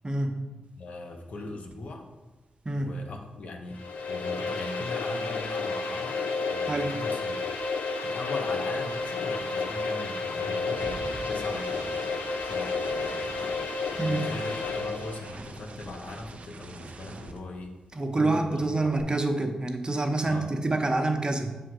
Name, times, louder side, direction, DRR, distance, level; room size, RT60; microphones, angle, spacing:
voice 1, 0.0-0.4 2.6-2.9 6.7-7.0 10.5-10.8 14.0-14.3 17.9-21.6, right 2 dB, 35° right, 5 dB, 0.8 m, -27 dB
voice 2, 0.8-2.1 2.7-3.8 4.1-7.4 8.0-11.0 11.3-12.1 12.4-13.5 13.9-17.7 18.1-19.0 20.2-20.5, left 2 dB, 70° left, 3 dB, 0.9 m, -40 dB
sound 1, 1.7-1.9 2.2-6.6 6.8-18.1 18.4-19.0, right 3 dB, 60° right, 0.6 m, -47 dB
sound 2, 3.7-15.3, left 3 dB, 85° left, 0.6 m, -31 dB
6.2 x 3.7 x 4.8 m, 1.1 s
cardioid pair, 50°, 2 cm